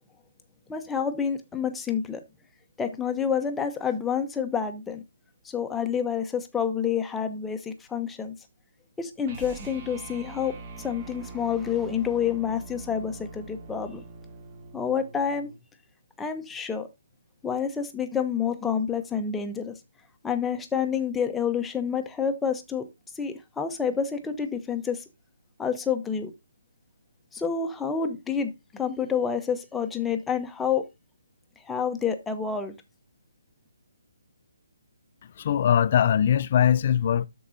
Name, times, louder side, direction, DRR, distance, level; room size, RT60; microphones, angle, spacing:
voice 1, 0.7-2.2 2.8-5.0 5.4-8.3 9.0-14.0 14.7-15.5 16.2-16.9 17.4-19.8 20.2-22.9 23.2-25.0 25.6-26.3 27.3-30.8 31.7-32.7, left 7 dB, 10° left, 0.9 m, -28 dB
sound 1, 9.2-15.6, right 3 dB, 30° right, 1.9 m, -43 dB
voice 2, 35.4-37.3, left 9 dB, 40° left, 0.5 m, -21 dB
13.0 x 4.7 x 2.7 m
figure-of-eight pair, 140°, 0 cm